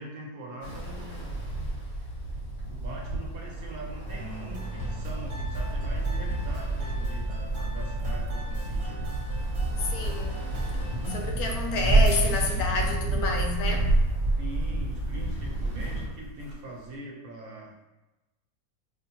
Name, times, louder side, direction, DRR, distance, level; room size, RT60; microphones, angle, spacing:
voice 1, 0.0-1.4 2.7-9.1 14.4-17.7, right 1 dB, 75° right, 1.2 m, -42 dB
Ocean, 0.6-16.0, right 2 dB, 35° left, 0.8 m, -32 dB
sound 1, 4.1-11.3, right 1 dB, 50° right, 1.1 m, -40 dB
sound 2, 7.0-16.9, right 2 dB, 20° right, 1.3 m, -29 dB
voice 2, 9.9-10.5 11.1-13.9, left 3 dB, 75° left, 1.0 m, -29 dB
4.6 x 2.2 x 2.8 m
omnidirectional pair, 1.6 m